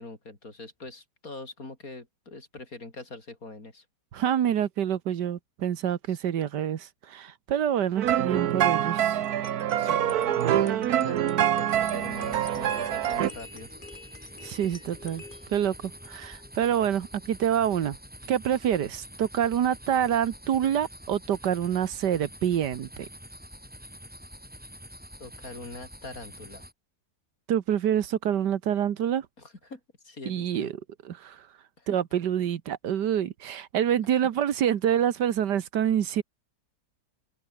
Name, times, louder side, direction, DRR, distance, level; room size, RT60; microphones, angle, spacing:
voice 1, 0.0-3.8 6.1-6.2 9.7-13.7 25.2-26.6 29.4-30.7 31.8-32.0 34.1-34.2, left 3 dB, 55° left, 4.9 m, -43 dB
voice 2, 4.1-9.2 14.4-15.2 15.5-18.0 18.3-23.1 27.5-29.3 30.2-30.7 31.1-31.4 31.9-36.2, right 9 dB, 85° right, 1.7 m, -27 dB
sound 1, 8.0-13.3, right 11 dB, 65° right, 1.3 m, -25 dB
sound 2, 9.1-17.4, left 3 dB, 30° left, 2.4 m, -49 dB
sound 3, 11.7-26.7, equal, 5° right, 5.7 m, -46 dB
omnidirectional pair, 1.8 m